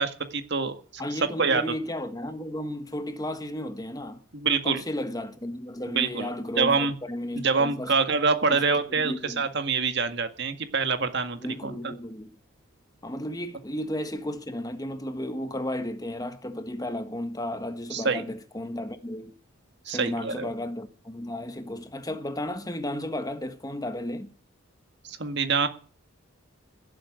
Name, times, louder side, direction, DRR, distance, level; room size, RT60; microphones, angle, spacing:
voice 1, 0.0-0.8 1.4-1.6 4.3-4.8 5.9-6.3 6.6-6.9 7.4-11.9 17.9-18.2 19.9-20.5 25.1-25.7, right 4 dB, 55° right, 1.9 m, -25 dB
voice 2, 1.0-4.2 4.6-7.9 8.5-8.6 8.9-9.5 11.4-12.3 13.0-19.3 19.9-24.3, left 1 dB, 20° left, 1.4 m, -34 dB
15.5 x 7.8 x 9.4 m
head